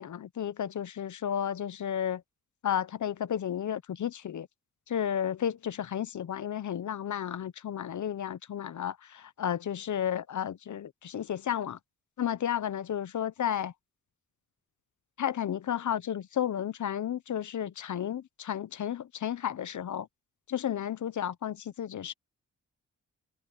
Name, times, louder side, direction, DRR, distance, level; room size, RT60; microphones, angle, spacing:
voice 1, 0.0-2.2 2.6-4.5 4.9-11.8 12.2-13.7 15.2-20.1 20.5-22.1, left 9 dB, 60° left, 1.0 m, -32 dB
cardioid pair, 80°, 34 cm